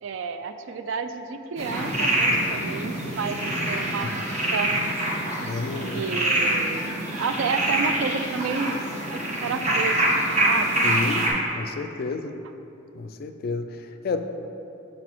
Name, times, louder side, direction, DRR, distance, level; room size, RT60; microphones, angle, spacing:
voice 1, 0.0-4.1 4.5-4.7 5.9-6.9 7.2-8.8 9.1-10.0 10.2-10.8, right 5 dB, 70° right, 8 dB, 0.3 m, -30 dB
sound 1, 1.6-11.3, right 1 dB, 35° right, 0.9 m, -25 dB
voice 2, 5.4-6.1 10.8-12.4 12.9-14.2, left 3 dB, 50° left, 8 dB, 0.3 m, -30 dB
6.4 x 4.1 x 4.4 m, 2.8 s
head